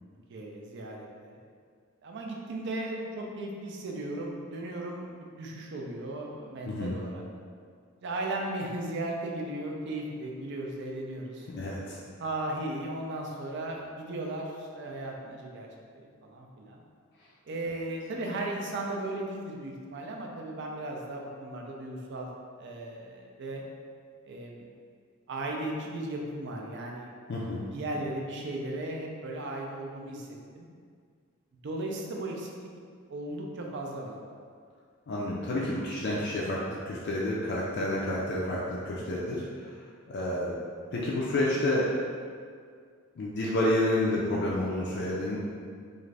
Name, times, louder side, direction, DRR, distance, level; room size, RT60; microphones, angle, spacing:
voice 1, 0.3-1.4 2.0-7.2 8.0-11.5 12.2-15.7 15.9-16.8 17.5-22.3 22.6-23.6 24.3-24.7 25.3-27.4 27.7-30.3 30.5-30.7 31.6-32.7 33.1-34.2 38.9-39.0, right 1 dB, 55° right, 0 dB, 0.4 m, -36 dB
voice 2, 11.5-12.0 27.3-27.6 35.1-39.4 40.1-40.5 40.9-42.0 43.2-45.4, left 1 dB, 50° left, -5 dB, 0.4 m, -29 dB
2.5 x 2.4 x 3.2 m, 2.1 s
head